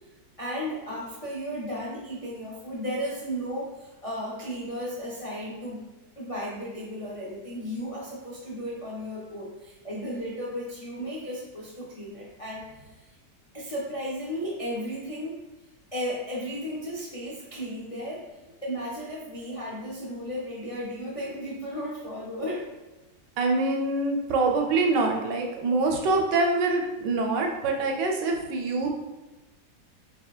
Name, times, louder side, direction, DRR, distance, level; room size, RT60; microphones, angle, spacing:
voice 1, 0.4-5.8 6.2-13.1 13.5-15.4 15.9-18.2 18.6-22.7, equal, 60° left, -6 dB, 0.3 m, -34 dB
voice 2, 23.4-28.9, right 3 dB, 80° right, 2 dB, 1.3 m, -25 dB
4.3 x 3.7 x 2.4 m, 1.1 s
omnidirectional pair, 1.9 m